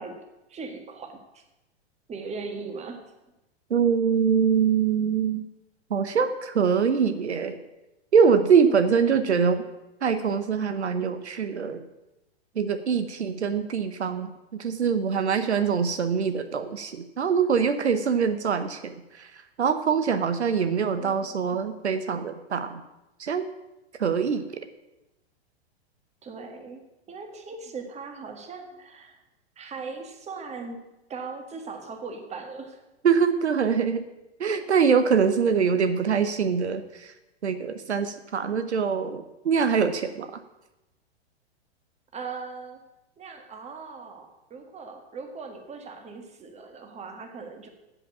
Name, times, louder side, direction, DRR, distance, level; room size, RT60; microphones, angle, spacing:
voice 1, 0.0-1.4 2.1-3.1 20.7-21.6 26.2-29.2 29.6-32.8 35.4-35.8 42.1-42.8 43.2-47.7, right 4 dB, 20° right, 5 dB, 1.7 m, -39 dB
voice 2, 3.7-5.4 5.9-7.6 8.1-9.6 10.0-11.8 12.6-19.3 19.6-22.8 23.2-23.5 24.0-24.4 33.0-34.0 34.4-37.1 37.4-40.3, right 6 dB, 85° right, 10 dB, 1.0 m, -24 dB
8.0 x 8.0 x 8.5 m, 0.96 s
hypercardioid pair, 110°, 33 cm